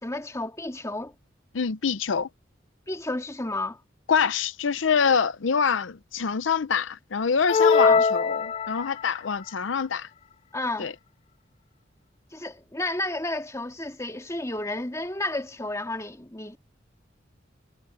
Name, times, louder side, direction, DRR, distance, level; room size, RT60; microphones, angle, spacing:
voice 1, 0.0-1.1 2.9-3.8 7.8-8.0 10.5-10.9 12.3-16.6, left 2 dB, 15° left, 2.3 m, -31 dB
voice 2, 1.5-2.3 4.1-10.1 10.8-10.9, left 6 dB, 85° left, 0.6 m, -25 dB
sound 1, 7.5-9.2, left 5 dB, 30° left, 0.3 m, -21 dB
head